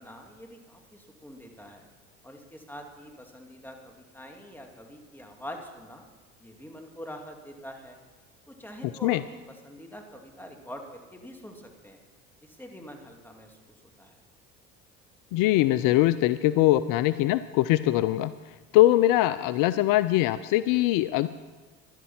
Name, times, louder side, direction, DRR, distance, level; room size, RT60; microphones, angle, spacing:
voice 1, 0.0-1.9 2.2-6.1 6.4-8.0 8.5-12.0 12.4-13.6 14.0-14.2, equal, 5° left, 2 dB, 2.3 m, -45 dB
voice 2, 15.3-18.3 18.7-21.3, left 15 dB, 65° left, 15 dB, 0.5 m, -22 dB
12.0 x 11.5 x 5.7 m, 1.3 s
hypercardioid pair, 75°, 36 cm